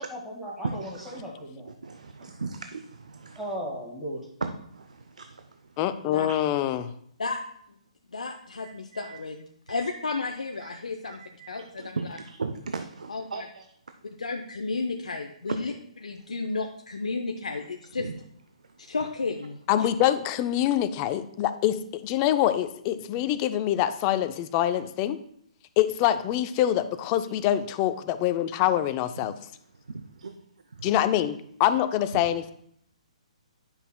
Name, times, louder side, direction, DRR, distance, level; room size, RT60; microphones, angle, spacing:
voice 1, 0.0-1.7 3.4-4.2, equal, 5° right, -4 dB, 1.8 m, -36 dB
voice 2, 0.8-1.2 1.8-3.4 4.4-5.4 6.3-6.4 8.6-9.2 9.7-9.9 10.6-10.7 11.0-13.7 15.5-15.6 18.0-18.1 29.9-30.3 30.8-30.9 32.1-32.2, right 4 dB, 85° right, 7 dB, 0.5 m, -37 dB
voice 3, 5.8-6.9 19.7-25.2 25.8-29.3 30.8-32.5, left 12 dB, 30° left, 12 dB, 0.4 m, -25 dB
voice 4, 8.1-11.2 11.5-12.0 13.1-13.5 14.2-15.7 16.0-18.1 18.9-19.9, left 3 dB, 85° left, 3 dB, 0.6 m, -32 dB
9.8 x 5.5 x 2.2 m, 0.68 s
hypercardioid pair, 140°, 4 cm